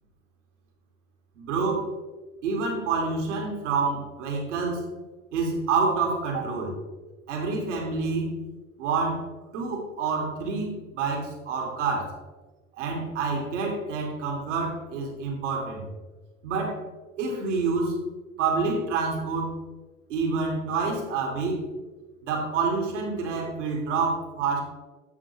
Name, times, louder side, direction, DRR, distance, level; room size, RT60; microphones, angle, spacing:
voice 1, 1.4-1.9 2.4-4.9 5.3-6.8 7.3-8.4 8.8-9.3 9.5-12.1 12.8-15.8 16.4-16.8 17.2-18.0 18.4-19.6 20.1-21.6 22.2-24.6, right 4 dB, 60° right, 1 dB, 2.3 m, -27 dB
9.7 x 7.7 x 3.1 m, 1.3 s
figure-of-eight pair, 80°, 40 cm